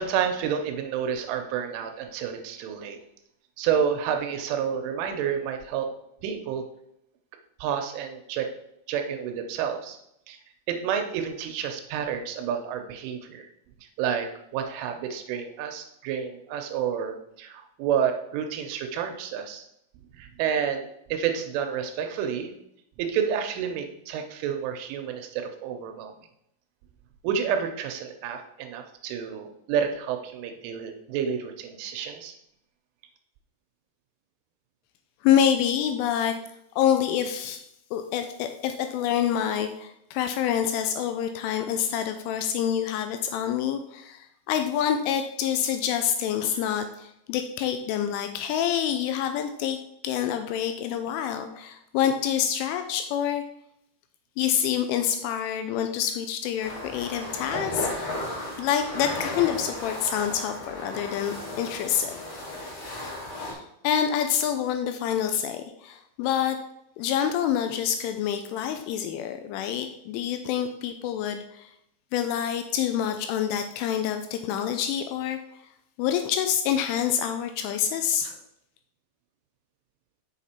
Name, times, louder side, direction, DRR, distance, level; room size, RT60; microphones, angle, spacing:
voice 1, 0.0-3.0 3.6-5.9 6.2-6.7 7.6-8.5 8.9-10.0 10.3-10.4 10.7-13.5 14.0-19.7 20.1-22.5 23.0-26.1 27.2-32.3, right 8 dB, 80° right, 6 dB, 3.0 m, -29 dB
voice 2, 35.2-36.4 36.8-37.6 37.9-49.8 50.0-53.4 54.4-58.1 58.6-62.1 63.3-66.6 67.0-71.7 72.1-75.6 76.0-78.4, left 9 dB, 85° left, 7 dB, 2.8 m, -27 dB
sound 1, 56.6-63.5, left 1 dB, 45° left, 2.2 m, -35 dB
7.2 x 5.9 x 4.2 m, 0.77 s
omnidirectional pair, 5.8 m